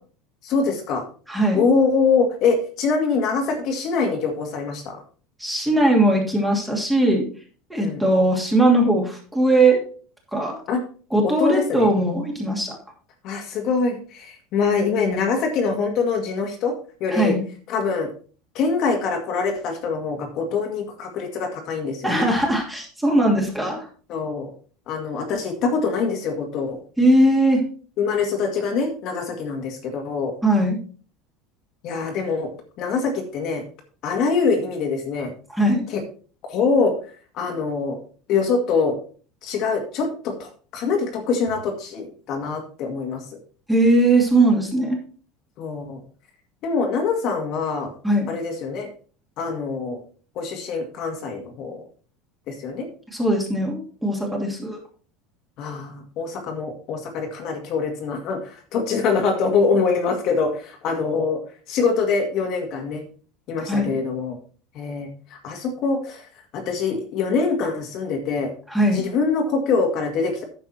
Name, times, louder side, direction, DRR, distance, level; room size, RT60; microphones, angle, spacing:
voice 1, 0.4-1.0 1.5-5.0 7.8-8.0 10.7-10.8 11.2-11.9 13.2-16.7 17.0-17.4 17.7-18.1 18.5-22.3 24.1-24.5 24.9-26.8 28.0-30.3 31.8-32.5 32.8-33.6 34.0-35.3 35.9-36.0 36.4-36.9 37.3-38.0 38.3-39.0 39.4-43.2 45.6-46.0 46.6-47.9 48.3-48.9 49.4-50.0 50.4-51.8 52.5-52.9 55.6-61.4 61.7-63.0 63.5-64.4 64.7-66.3 66.5-68.5 68.9-70.4, left 4 dB, 45° left, 3 dB, 2.0 m, -24 dB
voice 2, 1.3-1.6 5.4-7.2 7.7-9.8 10.3-10.6 11.1-12.7 17.1-17.4 22.0-23.8 27.0-27.6 30.4-30.8 35.5-35.8 43.7-45.0 48.0-48.3 53.1-54.8 63.7-63.9 68.7-69.0, right 1 dB, 5° right, -1 dB, 2.7 m, -19 dB
10.5 x 7.0 x 4.3 m, 0.40 s
cardioid pair, 160°, 0 cm